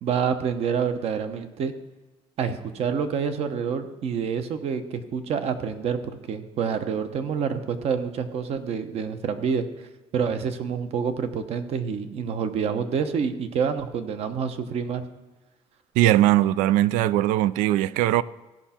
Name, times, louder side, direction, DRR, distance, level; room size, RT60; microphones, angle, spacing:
voice 1, 0.0-1.7 2.4-9.6 10.1-15.0, right 6 dB, 55° right, 0.9 m, -27 dB
voice 2, 16.0-18.2, right 14 dB, 85° right, 0.4 m, -20 dB
16.0 x 5.8 x 4.3 m
cardioid pair, 110°, 13 cm